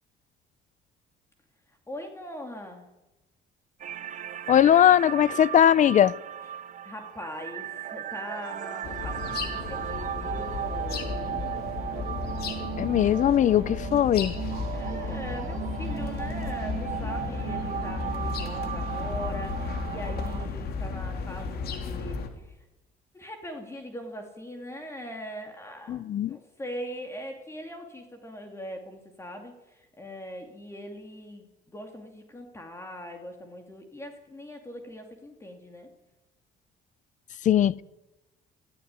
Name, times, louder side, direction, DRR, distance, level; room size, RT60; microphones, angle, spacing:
voice 1, 1.9-2.9 6.5-11.1 14.7-22.6 23.1-26.0 26.3-31.5 31.7-35.9, equal, 15° left, 2.7 m, -41 dB
sound 1, 3.8-20.5, right 10 dB, 50° right, 1.1 m, -36 dB
voice 2, 4.5-6.1 12.8-14.3 25.9-26.4 37.4-37.7, left 10 dB, 45° left, 0.6 m, -20 dB
sound 2, 8.8-22.3, left 5 dB, 65° left, 3.2 m, -34 dB
17.5 x 15.5 x 9.6 m
cardioid pair, 110°, 17 cm